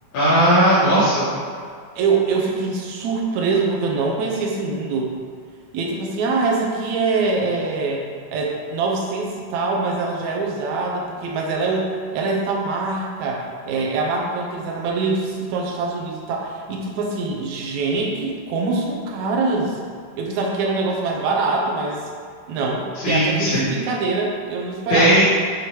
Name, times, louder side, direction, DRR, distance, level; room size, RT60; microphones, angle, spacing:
voice 1, 0.1-1.3 23.0-23.6 24.9-25.2, equal, 60° left, -11 dB, 2.6 m, -17 dB
voice 2, 1.9-5.1 5.7-8.0 8.3-19.8 20.2-22.0 22.5-25.2, right 3 dB, 75° right, -1 dB, 1.7 m, -24 dB
6.9 x 4.9 x 4.6 m, 2.2 s
omnidirectional pair, 4.4 m